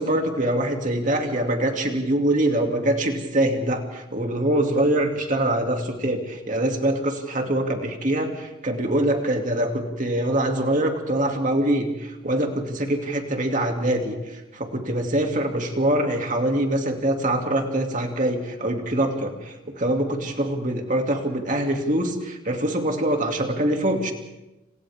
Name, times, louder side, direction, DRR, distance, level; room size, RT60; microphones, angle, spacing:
voice 1, 0.0-24.1, right 1 dB, 40° right, 3 dB, 2.7 m, -24 dB
30.0 x 29.0 x 3.7 m, 1.0 s
head